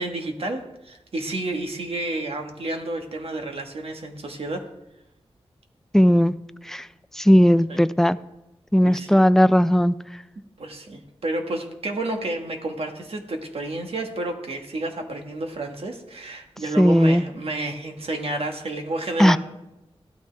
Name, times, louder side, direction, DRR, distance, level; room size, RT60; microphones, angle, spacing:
voice 1, 0.0-4.6 7.7-7.8 8.8-9.1 10.6-19.4, right 2 dB, 65° right, 3 dB, 1.6 m, -30 dB
voice 2, 5.9-6.3 6.6-6.9 7.1-8.2 8.7-9.9 16.8-17.2 19.2-19.4, equal, 5° left, 13 dB, 0.4 m, -17 dB
15.0 x 12.5 x 3.4 m, 0.94 s
wide cardioid pair, 70°, 10 cm